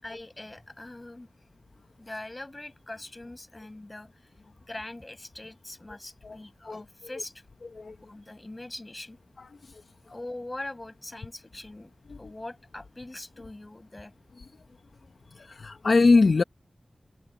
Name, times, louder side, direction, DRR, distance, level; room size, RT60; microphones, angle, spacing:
voice 1, 0.0-1.3 2.0-4.3 4.7-7.3 8.0-9.2 10.1-11.9 12.2-14.1, left 2 dB, 30° left, 7.6 m, -42 dB
voice 2, 15.4-16.4, left 3 dB, 70° left, 0.9 m, -21 dB
wide cardioid pair, 55°, 0 cm